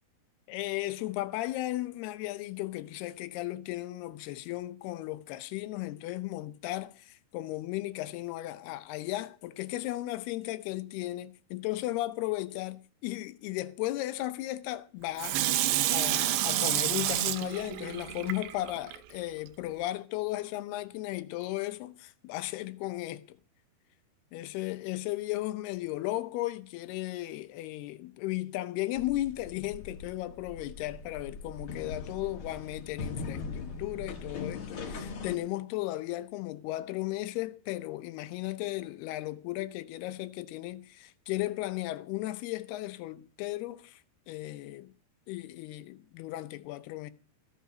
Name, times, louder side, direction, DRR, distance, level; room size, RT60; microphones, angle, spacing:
voice 1, 0.5-23.4 24.3-44.9 45.3-47.1, left 16 dB, 80° left, 2.8 m, -35 dB
Water tap faucet / Sink (filling or washing), 15.2-19.0 19.5-19.6, right 14 dB, 90° right, 3.0 m, -29 dB
sound 1, 28.9-35.3, left 4 dB, 50° left, 1.6 m, -40 dB
15.0 x 8.3 x 6.2 m
omnidirectional pair, 4.7 m